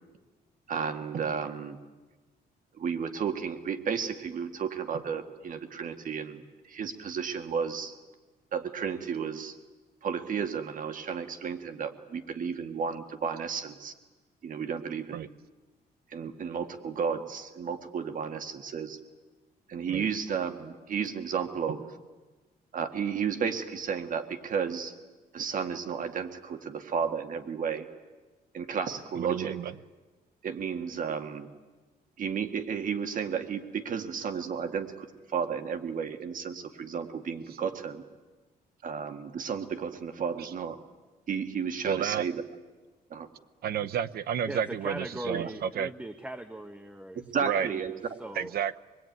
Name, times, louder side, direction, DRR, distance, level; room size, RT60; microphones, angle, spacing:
voice 1, 0.7-1.8 2.7-8.0 8.5-9.6 10.0-13.9 14.4-15.3 16.1-19.0 19.7-21.9 22.7-24.9 25.3-27.9 28.5-29.6 30.4-31.5 32.2-38.0 38.8-40.8 41.3-42.4 43.1-43.3 45.3-45.4 47.2-48.2, right 6 dB, 55° right, 7 dB, 1.8 m, -33 dB
voice 2, 29.2-29.7 40.4-40.5 41.8-42.2 43.6-45.5 45.8-45.9 47.4-47.7 48.4-48.8, right 9 dB, 70° right, 11 dB, 0.9 m, -31 dB
voice 3, 44.5-48.5, right 1 dB, 5° right, 8 dB, 1.1 m, -40 dB
25.5 x 21.0 x 9.4 m, 1.3 s
cardioid pair, 135°, 17 cm